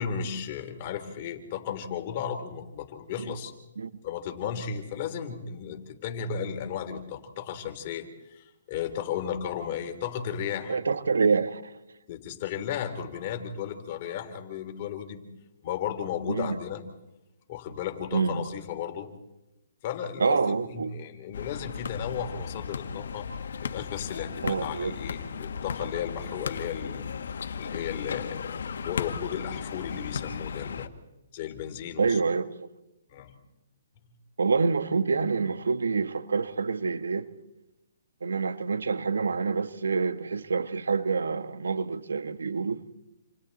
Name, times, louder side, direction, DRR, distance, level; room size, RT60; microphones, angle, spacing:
voice 1, 0.0-3.5 4.0-10.8 12.1-15.2 15.6-16.8 17.5-19.1 19.8-23.3 23.6-27.0 27.6-30.9 31.3-32.2 33.1-33.3, left 8 dB, 40° left, 3.4 m, -35 dB
voice 2, 10.7-11.7 16.3-16.6 18.1-18.5 20.2-20.9 24.4-25.0 32.0-32.7 34.4-37.3 38.2-42.8, right 4 dB, 80° right, 1.4 m, -27 dB
sound 1, 21.3-30.9, left 6 dB, 70° left, 1.6 m, -35 dB
29.0 x 28.0 x 4.2 m
hypercardioid pair, 145°, 0 cm